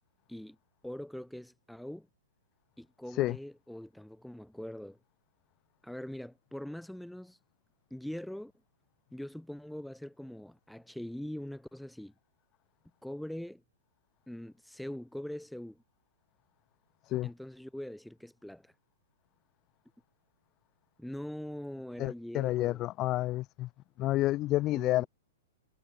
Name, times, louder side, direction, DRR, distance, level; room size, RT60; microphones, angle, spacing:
voice 1, 0.8-2.1 2.8-5.0 5.8-7.4 7.9-8.5 9.1-12.1 13.0-13.6 14.3-15.8 17.2-18.7 21.0-22.8 24.7-25.1, left 1 dB, ahead, 4.7 m, -42 dB
voice 2, 22.0-23.7 24.0-25.1, left 16 dB, 35° left, 1.0 m, -29 dB
hypercardioid pair, 115°, 0 cm